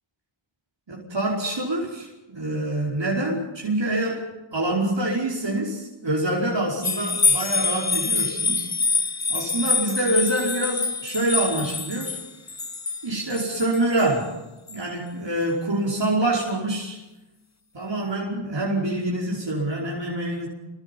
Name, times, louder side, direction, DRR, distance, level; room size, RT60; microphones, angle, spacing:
voice 1, 0.9-4.2 4.5-8.7 9.3-12.2 13.0-14.4 14.7-17.0 17.7-20.5, right 1 dB, 60° right, -3 dB, 5.1 m, -26 dB
sound 1, 6.8-14.1 14.7-14.8, left 4 dB, 35° left, 0.9 m, -26 dB
27.0 x 23.0 x 5.5 m, 1.0 s
wide cardioid pair, 50°, 49 cm